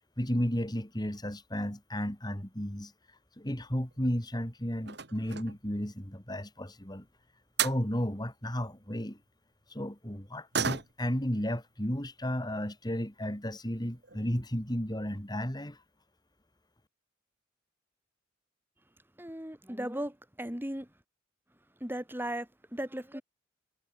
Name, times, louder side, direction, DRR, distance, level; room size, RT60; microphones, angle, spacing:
voice 1, 0.2-2.9 3.4-7.0 7.6-9.2 9.7-15.8, equal, 20° left, 3.2 m, -33 dB
sound 1, 3.8-4.3 4.8-5.7 7.2-7.3 7.6-7.9 10.5-11.2 11.6-11.7 12.1-12.2 13.0-13.1 13.4-13.5 13.9-14.2 14.5-14.6 14.9-15.0, right 7 dB, 60° right, 4.0 m, -34 dB
voice 2, 19.2-20.9 21.8-23.2, right 1 dB, 10° right, 3.1 m, -37 dB
head